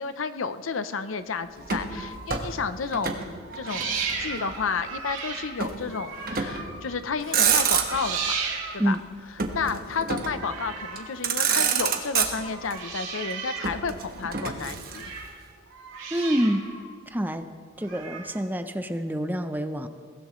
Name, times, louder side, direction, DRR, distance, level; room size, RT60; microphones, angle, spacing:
voice 1, 0.0-3.3 3.5-8.3 8.7-9.0 9.5-15.1, left 5 dB, 85° left, 12 dB, 0.7 m, -31 dB
Motor vehicle (road), 1.6-3.3 3.5-4.6 5.6-5.8 6.3-6.7 7.1-8.2 9.4-10.4 11.0-11.1 11.2-12.7 13.6-15.3, right 7 dB, 45° right, 1.4 m, -27 dB
sound 1, 1.6-2.4 3.4-6.9 7.2-9.0 10.3-11.2 12.2-13.8 14.1-15.4 15.7-16.8 17.8-18.4, right 5 dB, 85° right, 3.1 m, -35 dB
voice 2, 16.1-16.6 17.1-17.5 17.8-19.9, equal, 10° right, 8 dB, 0.6 m, -27 dB
22.5 x 17.0 x 3.1 m, 2.1 s
head